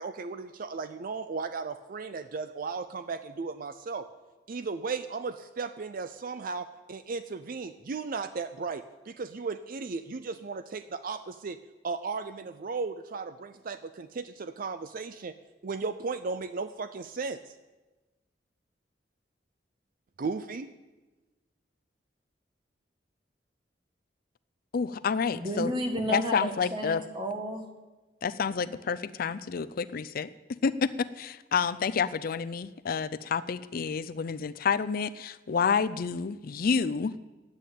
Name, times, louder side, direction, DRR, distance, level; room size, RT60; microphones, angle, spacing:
voice 1, 0.0-4.1 4.5-11.6 11.8-15.3 15.6-17.5 20.2-20.7, right 4 dB, 50° right, 11 dB, 0.5 m, -35 dB
voice 2, 24.7-25.7 26.1-27.0 28.2-37.1, left 5 dB, 55° left, 14 dB, 0.4 m, -29 dB
voice 3, 25.3-27.7, equal, 25° right, 3 dB, 1.7 m, -32 dB
10.5 x 8.5 x 9.0 m, 1.2 s
head